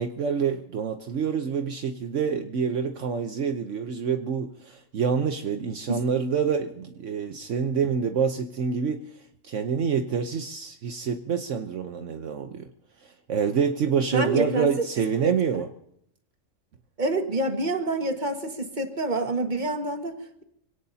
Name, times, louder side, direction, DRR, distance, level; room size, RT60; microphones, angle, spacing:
voice 1, 0.0-9.0 9.4-12.7 13.0-15.7, right 6 dB, 70° right, 6 dB, 1.2 m, -27 dB
voice 2, 14.1-14.9 15.2-15.3 17.0-20.4, right 2 dB, 35° right, 5 dB, 1.8 m, -27 dB
25.5 x 17.5 x 2.8 m, 0.72 s
omnidirectional pair, 1.3 m